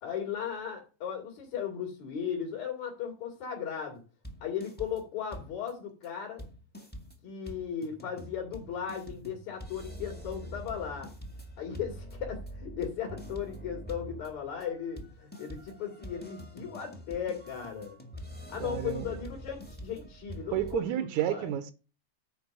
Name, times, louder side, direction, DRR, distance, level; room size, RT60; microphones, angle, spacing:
voice 1, 0.0-4.0 4.4-6.5 7.2-11.1 11.6-18.0 18.5-20.9 21.3-21.5, left 8 dB, 70° left, 3.9 m, -36 dB
sound 1, 4.2-5.0 5.3-5.7 6.0-6.1 6.4-20.8, equal, 10° left, 0.5 m, -45 dB
voice 2, 18.6-19.2 20.5-21.7, right 12 dB, 80° right, 2.1 m, -31 dB
10.5 x 4.7 x 6.6 m
omnidirectional pair, 3.4 m